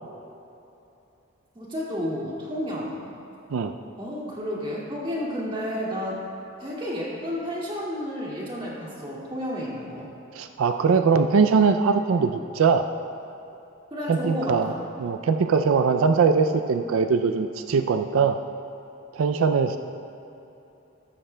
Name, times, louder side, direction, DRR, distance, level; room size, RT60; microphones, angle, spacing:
voice 1, 1.5-3.1 4.0-6.2 6.6-10.1 13.9-14.8 17.7-17.9, equal, 25° right, -6 dB, 2.2 m, -31 dB
voice 2, 10.3-12.8 14.1-18.4 19.1-19.8, right 5 dB, 90° right, 8 dB, 0.4 m, -21 dB
14.5 x 13.0 x 2.2 m, 2.9 s
head